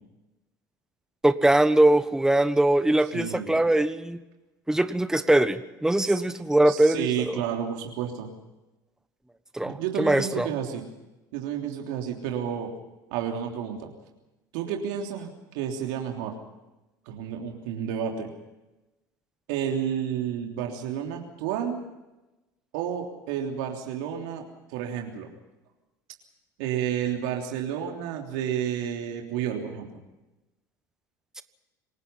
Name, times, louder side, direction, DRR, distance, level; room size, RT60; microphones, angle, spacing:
voice 1, 1.2-4.2 4.7-7.4 9.5-10.5, right 1 dB, 5° right, 11 dB, 1.3 m, -22 dB
voice 2, 3.1-3.6 6.0-6.2 6.7-8.3 9.6-10.8 11.3-12.7 13.1-13.9 14.5-16.3 17.0-18.3 19.5-21.8 22.7-25.3 26.6-30.0, right 9 dB, 70° right, 1 dB, 3.3 m, -31 dB
28.0 x 19.0 x 5.6 m, 1.0 s
hypercardioid pair, 75°, 10 cm